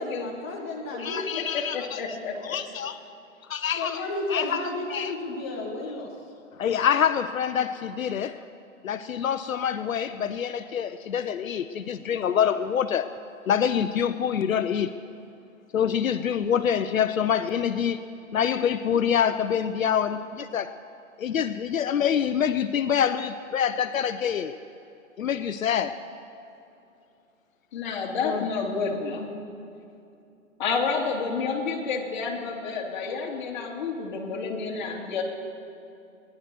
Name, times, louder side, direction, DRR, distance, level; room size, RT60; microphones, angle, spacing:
voice 1, 0.0-1.4 3.8-6.1, left 2 dB, 10° left, -3 dB, 0.5 m, -32 dB
voice 2, 1.0-2.0 2.4-3.0 3.5-4.0 4.3-4.6 4.9-5.1 6.5-8.4 8.8-13.1 13.5-14.9 15.7-18.0 18.3-20.7 21.2-24.6 25.2-26.0 28.2-28.4, left 8 dB, 80° left, 11 dB, 0.8 m, -26 dB
voice 3, 1.5-2.6 27.7-29.3 30.6-35.2, left 5 dB, 35° left, -1 dB, 2.7 m, -29 dB
21.0 x 11.0 x 6.1 m, 2.7 s
hypercardioid pair, 155°, 40 cm